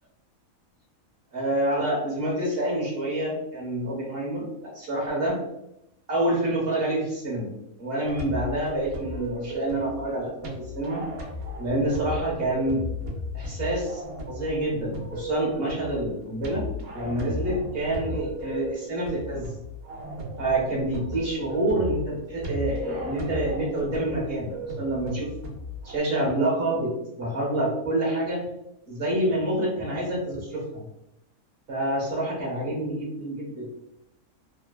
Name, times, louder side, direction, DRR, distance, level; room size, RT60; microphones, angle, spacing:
voice 1, 1.3-4.5 4.7-5.4 6.1-7.5 7.8-11.0 11.6-12.9 13.3-14.0 14.3-16.7 16.9-19.5 20.4-25.3 25.8-28.5 28.9-30.8 31.7-33.7, right 1 dB, 50° right, -3 dB, 1.0 m, -27 dB
sound 1, 8.0-26.0, left 1 dB, 90° right, 1.1 m, -36 dB
2.9 x 2.1 x 2.2 m, 0.84 s
omnidirectional pair, 1.5 m